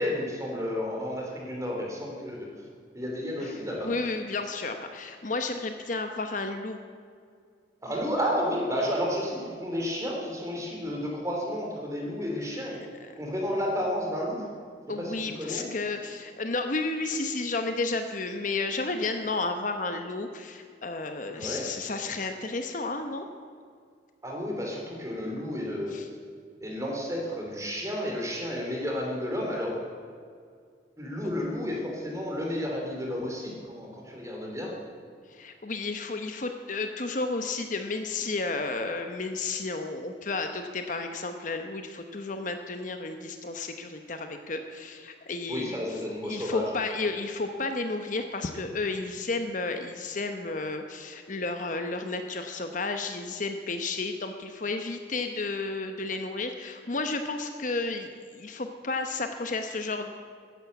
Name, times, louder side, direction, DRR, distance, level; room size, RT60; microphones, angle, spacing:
voice 1, 0.0-2.5 2.9-3.9 7.8-12.8 13.2-14.5 15.0-15.7 21.3-21.6 24.2-25.9 26.6-29.8 31.0-34.7 45.5-46.7, equal, 15° right, -1 dB, 3.3 m, -31 dB
voice 2, 3.4-6.8 13.0-13.1 14.9-23.3 25.9-26.1 31.2-31.3 35.3-45.9 46.2-60.2, left 3 dB, 45° left, 6 dB, 0.9 m, -32 dB
14.0 x 11.0 x 8.1 m, 2.1 s
head